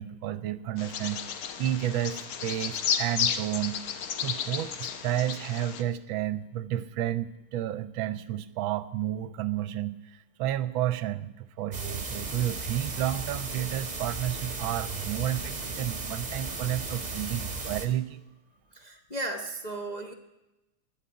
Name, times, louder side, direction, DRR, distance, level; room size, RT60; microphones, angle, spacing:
voice 1, 0.0-3.8 4.2-18.2, right 12 dB, 75° right, 14 dB, 1.3 m, -31 dB
Bird vocalization bird call bird song, 0.8-5.8, left 8 dB, 80° left, 1.9 m, -32 dB
sound 1, 11.7-17.9, right 3 dB, 20° right, 1.4 m, -35 dB
voice 2, 18.7-20.1, right 2 dB, 30° left, 2 dB, 0.8 m, -35 dB
11.5 x 10.0 x 9.5 m, 0.98 s
omnidirectional pair, 2.3 m